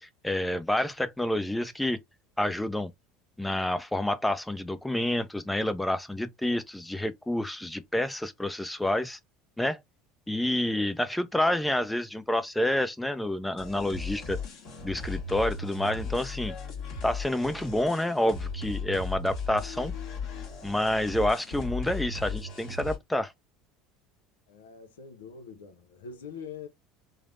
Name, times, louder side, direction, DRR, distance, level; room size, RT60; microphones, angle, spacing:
voice 1, 0.0-2.0 2.4-2.9 3.4-9.2 9.6-9.8 10.3-14.4 14.8-16.5 17.0-19.9 20.6-23.3, left 1 dB, 5° left, 0.5 m, -28 dB
sound 1, 13.6-23.0, left 4 dB, 55° left, 1.5 m, -37 dB
voice 2, 24.5-26.7, left 6 dB, 85° left, 0.5 m, -44 dB
3.1 x 2.0 x 2.5 m
hypercardioid pair, 80°, 0 cm